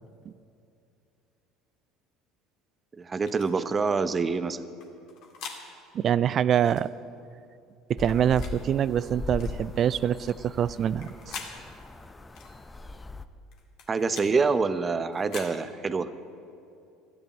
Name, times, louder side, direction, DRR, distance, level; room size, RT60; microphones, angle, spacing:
voice 1, 3.0-4.6 13.9-16.1, right 4 dB, 30° right, 13 dB, 0.8 m, -26 dB
sound 1, 3.3-3.5 4.8-5.6 6.7-6.9 8.0-8.6 9.4-9.6 10.8-11.5 12.4-12.5 13.5-14.3 15.1-15.5, left 6 dB, 60° left, 2.1 m, -43 dB
voice 2, 5.9-6.9 7.9-11.1, right 9 dB, 45° right, 18 dB, 0.4 m, -25 dB
sound 2, 8.0-13.2, left 3 dB, 15° left, 0.7 m, -40 dB
13.5 x 8.9 x 8.9 m, 2.6 s
hypercardioid pair, 65°, 0 cm